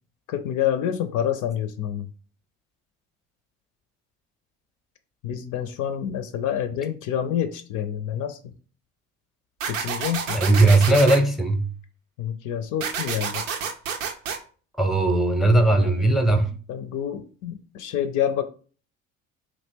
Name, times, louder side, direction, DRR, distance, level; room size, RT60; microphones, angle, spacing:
voice 1, 0.3-2.1 5.2-8.4 9.7-10.4 12.2-13.4 15.6-16.1 16.7-18.4, left 10 dB, 55° left, 0.5 m, -28 dB
sound 1, 9.6-11.2 12.8-14.4, right 7 dB, 85° right, 0.5 m, -29 dB
voice 2, 10.3-11.7 14.8-16.5, right 2 dB, ahead, 0.6 m, -18 dB
3.0 x 2.5 x 3.4 m
hypercardioid pair, 60°, 38 cm